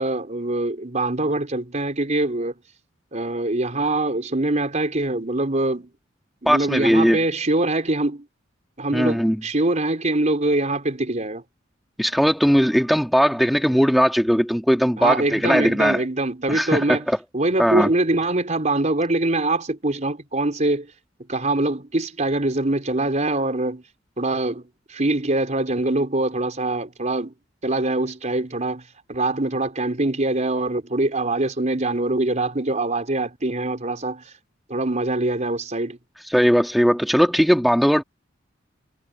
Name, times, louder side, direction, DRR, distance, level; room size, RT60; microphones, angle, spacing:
voice 1, 0.0-2.5 3.1-5.9 6.4-8.3 8.8-11.4 15.0-17.1 17.3-20.9 21.3-23.8 24.2-27.3 27.6-34.3 34.7-36.0, right 2 dB, 40° right, 4.1 m, -23 dB
voice 2, 6.5-7.2 8.9-9.4 12.0-16.0 16.5-17.2 17.6-17.9 36.3-38.0, equal, ahead, 2.1 m, -19 dB
head